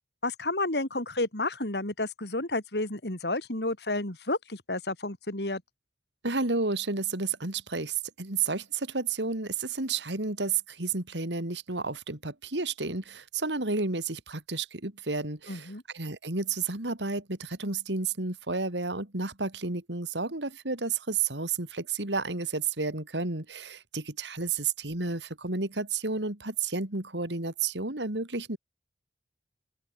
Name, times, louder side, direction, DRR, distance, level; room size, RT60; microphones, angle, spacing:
voice 1, 0.2-5.6 15.5-15.8, left 2 dB, 70° left, 3.4 m, -31 dB
voice 2, 6.2-28.6, right 4 dB, 85° right, 3.2 m, -31 dB
open air
head